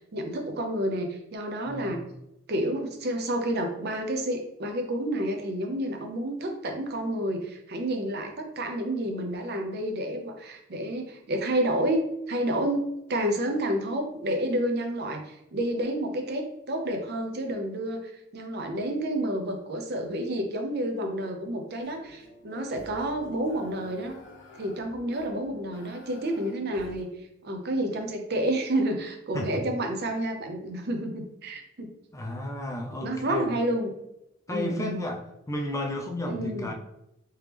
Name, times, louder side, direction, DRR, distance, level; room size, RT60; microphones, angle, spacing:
voice 1, 0.1-2.0 2.5-12.0 12.3-24.2 24.6-27.1 27.4-31.9 33.0-33.9 34.5-35.1 36.3-36.7, right 1 dB, 55° right, 4 dB, 0.6 m, -30 dB
sound 1, 21.8-27.0, left 2 dB, 70° left, 0.9 m, -48 dB
voice 2, 32.1-33.5 34.5-35.2 35.5-36.7, left 1 dB, 15° left, 2 dB, 0.4 m, -32 dB
3.5 x 3.0 x 3.3 m, 0.85 s
head